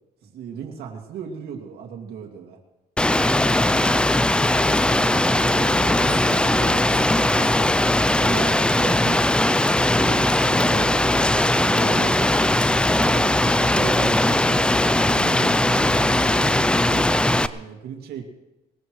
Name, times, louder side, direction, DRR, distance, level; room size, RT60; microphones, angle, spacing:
voice 1, 0.2-2.6 5.4-7.8 8.1-9.2 9.7-12.3 12.9-17.1 17.5-18.2, right 7 dB, 70° right, 2 dB, 2.4 m, -36 dB
Rain, 3.0-17.5, left 1 dB, 5° left, 0.4 m, -19 dB
voice 2, 3.1-3.2, left 2 dB, 45° left, -1 dB, 6.1 m, -40 dB
20.5 x 18.0 x 3.2 m, 0.98 s
cardioid pair, 110°, 17 cm